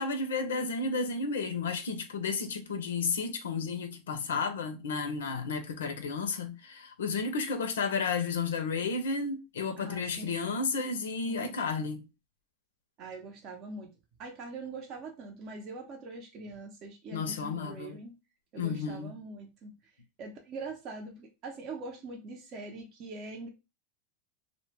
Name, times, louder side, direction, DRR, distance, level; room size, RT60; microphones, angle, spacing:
voice 1, 0.0-12.0 17.1-18.0 18.6-19.1, left 4 dB, 90° left, 0.5 m, -32 dB
voice 2, 9.8-10.7 11.2-11.6 13.0-13.9 14.2-18.1 18.5-19.9 20.2-23.5, right 3 dB, 45° right, 0.6 m, -43 dB
2.1 x 2.0 x 3.2 m
hypercardioid pair, 110°, 0 cm